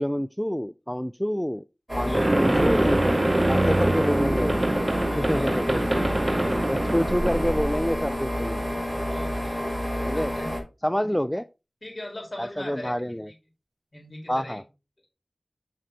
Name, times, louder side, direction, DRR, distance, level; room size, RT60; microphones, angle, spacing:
voice 1, 0.0-1.6 1.9-3.0 3.5-4.6 5.1-5.9 6.7-8.6 10.0-10.3 10.8-11.4 12.4-13.3 14.3-14.6, equal, 5° left, 14 dB, 0.4 m, -27 dB
sound 1, 1.9-10.6, equal, 15° right, 5.7 m, -29 dB
voice 2, 2.0-2.4 5.1-5.6 6.3-7.0 9.0-10.5 11.8-13.2 13.9-14.6, left 1 dB, 40° left, 0 dB, 5.1 m, -40 dB
sound 2, 2.1-8.1, right 1 dB, 35° right, 1.0 m, -24 dB
7.6 x 6.5 x 4.1 m, 0.29 s
wide cardioid pair, 40°, 0 cm